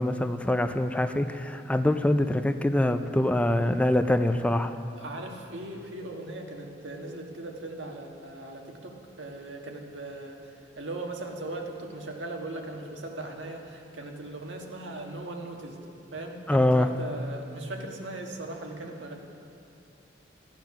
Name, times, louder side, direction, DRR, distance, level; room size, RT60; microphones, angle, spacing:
voice 1, 0.0-4.7 16.5-16.9, left 1 dB, 5° left, 8 dB, 0.4 m, -24 dB
voice 2, 5.0-15.8 16.1-19.2, right 2 dB, 90° right, 1 dB, 1.5 m, -39 dB
15.0 x 9.2 x 5.9 m, 2.5 s
head